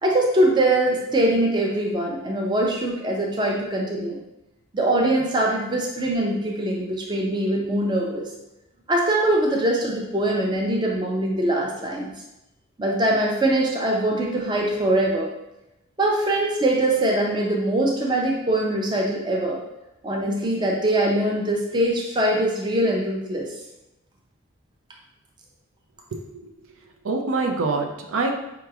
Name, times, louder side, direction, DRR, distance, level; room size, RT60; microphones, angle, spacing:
voice 1, 0.0-4.2 4.7-8.3 8.9-12.1 12.8-15.3 16.0-19.6 20.0-23.5, right 1 dB, 20° right, -1 dB, 0.5 m, -22 dB
voice 2, 26.1-26.5 27.0-28.3, right 3 dB, 75° right, 3 dB, 0.5 m, -25 dB
4.8 x 2.9 x 2.4 m, 0.91 s
head